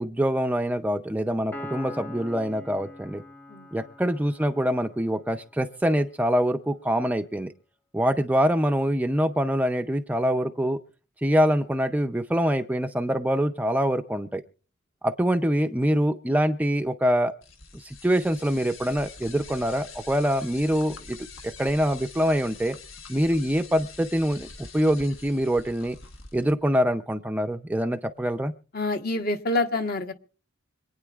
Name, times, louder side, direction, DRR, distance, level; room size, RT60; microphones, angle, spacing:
voice 1, 0.0-3.2 3.7-7.5 7.9-10.8 11.2-14.4 15.0-17.3 17.8-21.2 21.4-22.8 23.1-24.5 24.7-26.0 26.3-28.5, equal, 5° right, 7 dB, 0.4 m, -24 dB
Piano, 1.5-5.1, left 1 dB, 10° left, 0.9 m, -42 dB
sound 1, 17.4-26.5, left 4 dB, 70° left, 1.4 m, -45 dB
voice 2, 28.7-30.1, left 2 dB, 45° left, 6 dB, 1.1 m, -27 dB
26.0 x 9.3 x 2.4 m, 0.40 s
head